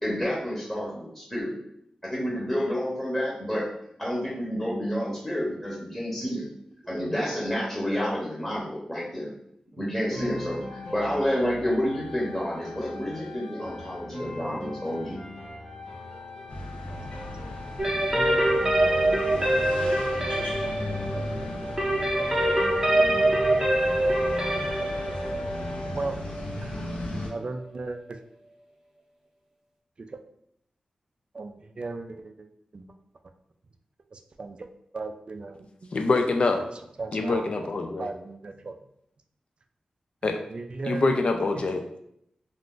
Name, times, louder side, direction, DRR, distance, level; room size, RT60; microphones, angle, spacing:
voice 1, 0.0-1.6 2.0-3.7 4.0-6.5 6.9-9.3 9.8-15.3, equal, 10° left, -5 dB, 0.8 m, -29 dB
sound 1, 10.1-26.1, left 2 dB, 40° left, 0.8 m, -40 dB
sound 2, 16.5-27.3, left 1 dB, 90° left, 0.7 m, -36 dB
sound 3, 17.8-27.5, right 1 dB, 25° right, 0.7 m, -25 dB
voice 2, 27.3-28.2 30.0-30.2 31.3-32.5 32.7-32.9 34.1-34.7 34.9-35.9 36.6-36.7 37.0-37.5 38.0-38.8 40.5-41.2, right 3 dB, 50° right, 7 dB, 0.3 m, -36 dB
voice 3, 35.9-36.6 37.1-38.1 40.2-40.4 40.9-42.0, left 3 dB, 55° left, 5 dB, 0.4 m, -25 dB
2.4 x 2.4 x 3.6 m, 0.74 s
wide cardioid pair, 75°, 2 cm